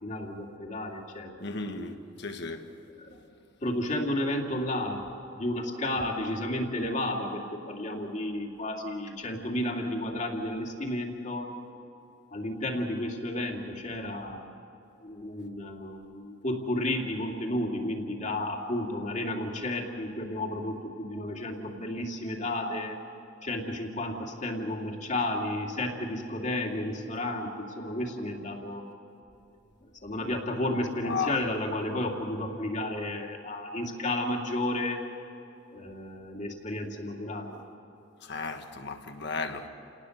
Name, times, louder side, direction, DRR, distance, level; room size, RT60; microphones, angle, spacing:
voice 1, 0.0-1.4 3.0-3.1 3.6-5.0 5.3-11.5 12.3-14.5 15.0-23.0 23.4-28.8 30.0-35.0 35.7-37.6, left 1 dB, 40° left, 2.6 m, -32 dB
voice 2, 1.4-2.7 3.1-3.2 31.0-31.4 38.2-39.7, left 4 dB, 65° left, 1.6 m, -34 dB
29.5 x 19.0 x 6.7 m
head